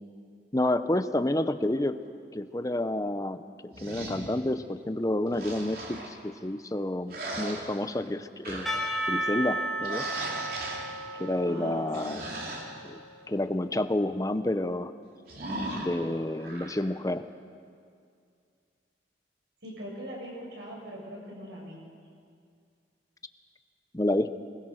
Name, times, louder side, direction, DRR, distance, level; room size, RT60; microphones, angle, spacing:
voice 1, 0.5-2.0 2.3-8.7 9.1-10.1 11.2-12.2 12.8-13.0 13.3-14.9 15.7-17.3 23.9-24.3, left 1 dB, 20° left, 11 dB, 0.7 m, -29 dB
sound 1, 3.7-4.3 5.3-6.1 7.1-8.1 8.4-8.9 9.8-10.9 11.9-12.6 15.3-15.9 16.4-16.7, right 1 dB, 55° right, 3.6 m, -37 dB
Percussion / Church bell, 8.7-13.1, right 1 dB, ahead, 3.0 m, -34 dB
voice 2, 11.5-12.2 19.6-21.8, equal, 70° right, -2 dB, 6.8 m, -41 dB
24.5 x 20.5 x 6.5 m, 2.3 s
head